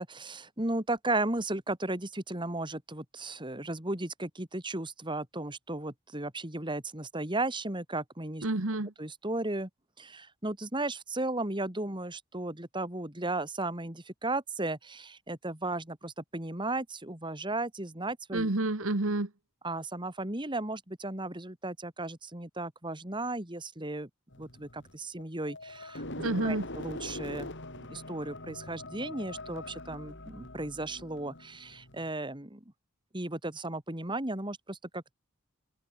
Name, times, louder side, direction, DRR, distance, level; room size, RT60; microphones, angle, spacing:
voice 1, 0.0-8.4 9.0-9.7 10.0-18.5 19.6-24.1 24.4-26.0 26.4-27.5 27.9-32.6 33.1-35.1, right 2 dB, 20° right, 2.9 m, -35 dB
voice 2, 8.4-8.9 18.3-19.3 26.2-26.7, right 2 dB, 70° right, 1.6 m, -29 dB
sound 1, 24.3-32.1, left 2 dB, 55° left, 5.1 m, -43 dB
head